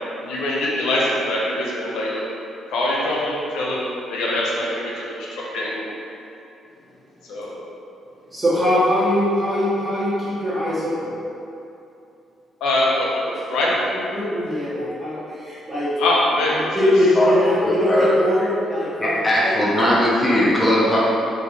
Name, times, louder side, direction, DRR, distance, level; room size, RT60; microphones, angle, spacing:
voice 1, 0.2-2.2 2.7-5.9 7.3-7.6 12.6-13.8 16.0-16.9, left 1 dB, 90° left, -4 dB, 0.7 m, -23 dB
voice 2, 8.3-11.1 14.1-15.9 16.7-19.5, left 1 dB, 20° right, -12 dB, 0.9 m, -21 dB
voice 3, 17.6-18.1 19.0-21.0, equal, 15° left, -7 dB, 0.7 m, -19 dB
3.0 x 2.4 x 3.8 m, 2.7 s
cardioid pair, 90°, 0 cm